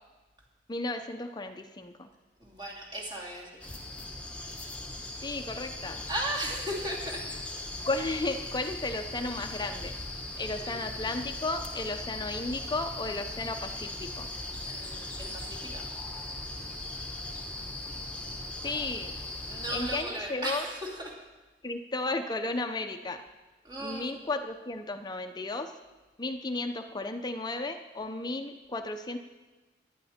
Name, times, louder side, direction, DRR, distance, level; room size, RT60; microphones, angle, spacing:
voice 1, 0.7-2.1 5.2-6.0 7.9-9.9 10.4-14.3 18.6-19.1 19.7-20.6 21.6-23.2 23.8-25.7 26.2-29.2, left 2 dB, 25° left, 7 dB, 0.6 m, -34 dB
voice 2, 2.4-3.5 6.1-7.2 10.5-11.0 14.7-15.8 19.5-21.1 23.6-24.1, right 1 dB, 25° right, -2 dB, 2.8 m, -36 dB
sound 1, 3.6-20.0, left 2 dB, 5° left, 1.3 m, -39 dB
18.0 x 11.0 x 4.3 m, 1.2 s
head